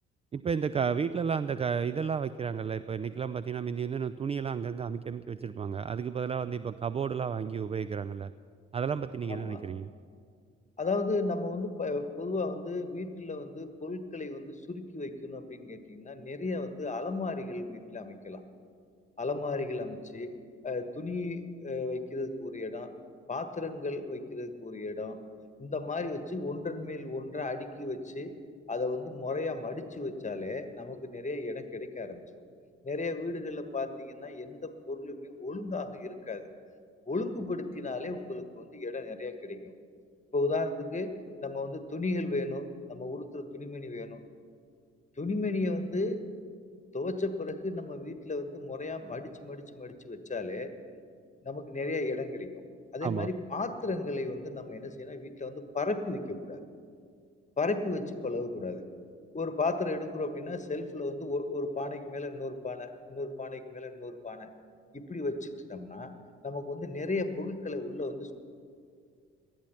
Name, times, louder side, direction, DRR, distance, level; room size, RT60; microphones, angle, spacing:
voice 1, 0.3-8.3 8.7-9.9 53.0-53.3, right 6 dB, 20° right, 15 dB, 0.3 m, -32 dB
voice 2, 9.3-9.6 10.8-18.4 19.2-20.3 20.6-22.9 23.3-25.2 25.6-28.3 28.7-32.2 32.8-36.5 37.1-39.6 40.3-41.1 41.4-44.2 45.2-46.2 46.9-50.7 51.4-52.5 52.9-56.6 57.6-58.8 59.3-64.5 64.9-66.1 66.4-68.3, left 3 dB, 20° left, 9 dB, 1.4 m, -34 dB
18.5 x 12.5 x 5.8 m, 2.2 s
figure-of-eight pair, 40°, 33 cm